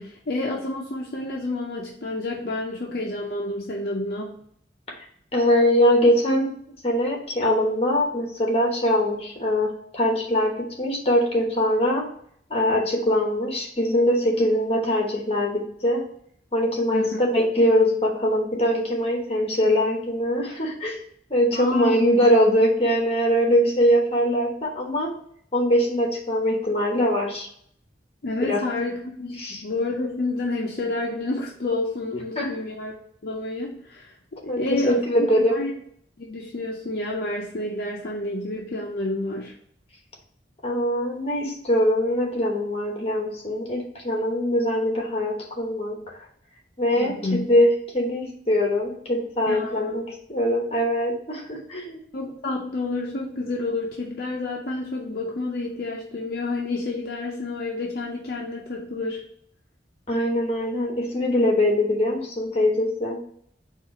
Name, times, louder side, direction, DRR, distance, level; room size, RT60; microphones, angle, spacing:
voice 1, 0.0-4.4 16.9-17.2 21.5-21.9 28.2-32.9 33.2-35.7 36.2-39.5 47.0-47.4 49.5-49.9 52.1-59.2, left 2 dB, 55° left, -2 dB, 0.6 m, -29 dB
voice 2, 5.3-6.5 6.8-10.5 10.8-12.0 12.5-16.0 16.5-21.0 21.3-25.1 25.5-27.5 28.5-28.6 29.4-29.6 32.3-32.6 34.5-35.6 40.6-46.0 46.8-47.1 47.5-47.7 47.9-50.0 50.3-52.0 60.1-63.2, equal, 35° left, 0 dB, 1.0 m, -22 dB
4.5 x 2.4 x 4.8 m, 0.66 s
head